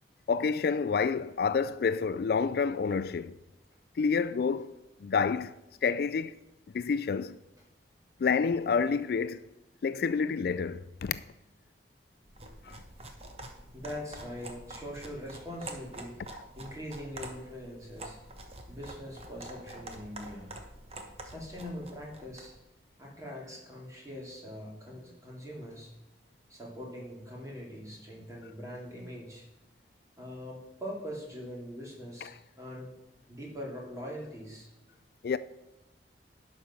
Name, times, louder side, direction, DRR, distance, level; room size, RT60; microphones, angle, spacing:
voice 1, 0.3-3.4 4.0-4.7 5.0-5.5 5.8-6.4 6.7-7.4 8.2-9.4 9.8-11.2 12.7-12.8 32.2-32.3 35.2-35.4, left 5 dB, 60° left, 0.3 m, -28 dB
sound 1, 12.2-22.6, right 2 dB, 35° right, 1.2 m, -46 dB
voice 2, 13.7-18.2 18.7-20.5 21.2-22.5 23.0-25.9 26.5-29.4 30.2-32.9 33.3-34.7, equal, 20° right, 3.0 m, -42 dB
11.5 x 5.4 x 6.3 m
head